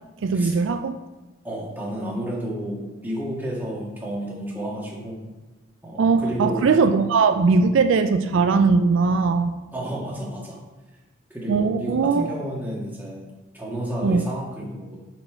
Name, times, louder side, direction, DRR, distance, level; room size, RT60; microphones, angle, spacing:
voice 1, 0.2-1.0 6.0-9.6 11.5-12.3 14.0-14.3, right 4 dB, 70° right, 8 dB, 0.4 m, -20 dB
voice 2, 1.4-5.2 5.8-6.7 9.7-10.6 11.3-13.2 13.5-15.0, right 1 dB, 10° right, -4 dB, 1.7 m, -31 dB
9.8 x 4.4 x 4.5 m, 1.1 s
head